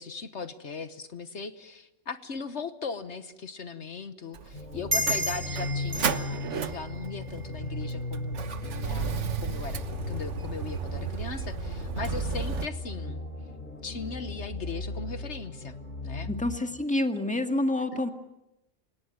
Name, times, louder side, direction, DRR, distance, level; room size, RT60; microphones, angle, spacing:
voice 1, 0.0-13.2 13.8-15.8 16.0-16.3 17.9-18.0, left 5 dB, 65° left, 11 dB, 1.4 m, -38 dB
Motor vehicle (road), 4.3-12.7, right 6 dB, 70° right, 1.4 m, -35 dB
sound 1, 4.5-16.6, left 1 dB, 40° left, 3.8 m, -37 dB
sound 2, 4.9-8.0, equal, 35° right, 1.9 m, -33 dB
voice 2, 16.3-18.1, left 1 dB, 5° left, 6 dB, 1.7 m, -28 dB
28.0 x 18.0 x 9.2 m, 0.90 s
omnidirectional pair, 1.3 m